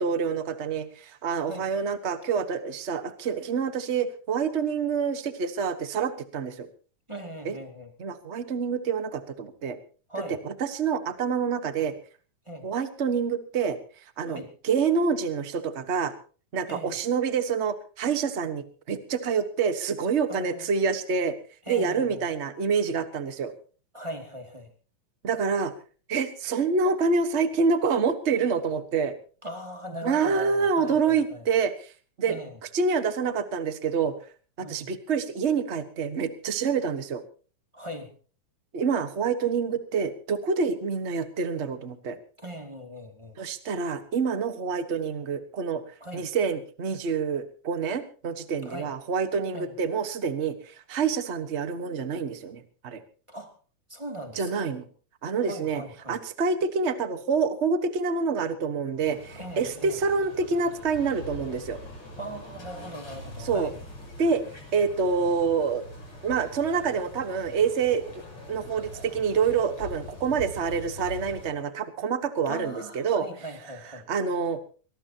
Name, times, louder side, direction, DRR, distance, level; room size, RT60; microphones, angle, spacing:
voice 1, 0.0-6.7 7.4-7.5 8.0-9.8 10.4-11.9 12.6-13.8 14.2-16.1 16.5-21.3 21.7-23.5 25.2-25.7 26.1-29.1 30.0-31.9 32.2-32.4 32.7-34.1 34.6-37.2 38.7-42.2 43.4-45.8 46.1-53.0 54.4-54.9 55.2-55.8 56.1-61.8 63.4-63.7 64.2-64.4 64.7-65.8 66.2-68.2 68.5-73.3 74.1-74.6, right 5 dB, 70° right, 10 dB, 0.6 m, -27 dB
voice 2, 7.1-7.9 10.1-10.4 12.4-12.6 14.3-14.5 16.7-17.0 20.3-20.7 21.7-22.3 23.9-24.7 29.4-31.5 32.3-32.6 34.6-34.9 37.7-38.1 42.4-43.4 46.0-46.3 48.6-48.9 49.5-49.7 53.3-53.6 53.9-54.7 55.4-56.2 59.3-60.0 62.2-63.8 72.5-74.1, equal, 10° right, 4 dB, 2.1 m, -39 dB
sound 1, 59.0-71.5, left 1 dB, 45° left, 6.8 m, -43 dB
23.5 x 18.5 x 2.9 m, 0.39 s
omnidirectional pair, 3.5 m